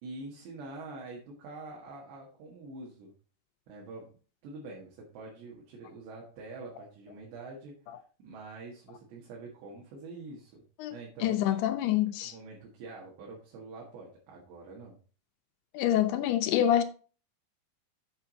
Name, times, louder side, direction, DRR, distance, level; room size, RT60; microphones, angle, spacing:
voice 1, 0.0-3.1 3.7-4.1 4.4-7.7 8.2-10.6 10.9-11.4 12.2-15.0, right 3 dB, 90° right, 4.0 m, -45 dB
voice 2, 10.8-12.3 15.7-16.8, left 11 dB, 80° left, 2.6 m, -27 dB
8.2 x 6.1 x 4.0 m
omnidirectional pair, 4.9 m